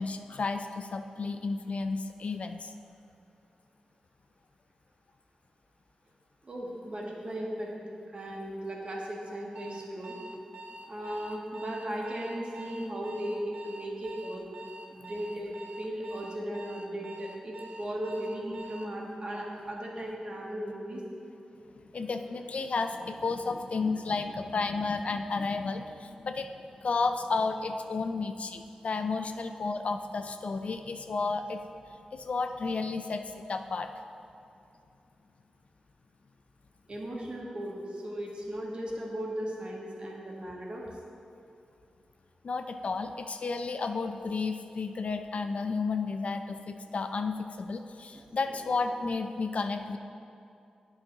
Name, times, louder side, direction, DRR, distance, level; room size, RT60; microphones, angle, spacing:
voice 1, 0.0-2.7 21.9-26.5 26.8-31.6 32.1-33.2 33.5-33.9 42.4-50.0, left 4 dB, 60° left, 7 dB, 0.4 m, -32 dB
voice 2, 6.4-7.7 8.1-10.2 10.9-14.4 14.9-21.0 32.7-32.8 36.9-40.8 48.1-48.7, right 1 dB, 45° right, -2 dB, 1.5 m, -37 dB
Alarm, 9.6-19.0, right 2 dB, 85° right, 0.5 m, -46 dB
9.0 x 5.6 x 3.8 m, 2.6 s
cardioid pair, 50°, 2 cm